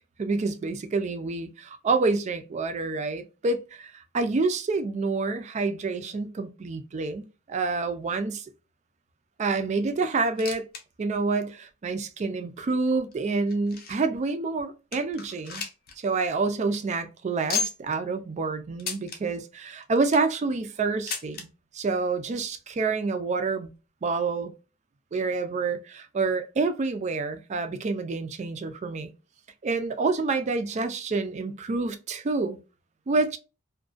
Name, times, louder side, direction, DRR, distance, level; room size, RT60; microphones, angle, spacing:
voice 1, 0.2-8.5 9.4-10.7 11.0-15.6 16.0-21.5 21.7-23.7 24.0-24.5 25.1-29.1 29.6-32.6 33.1-33.4, right 3 dB, 35° right, 0.3 m, -28 dB
sound 1, 10.2-10.8 11.1-11.2 11.9-12.0 12.7-14.2 14.6-14.7 14.9-15.9 16.2-16.3 16.6-16.8 17.5-18.0 18.8-19.2 19.8-20.3 21.1-21.5 22.4-22.5 22.7-22.8 23.6-23.7, left 5 dB, 45° left, 0.5 m, -34 dB
2.3 x 2.2 x 2.4 m
head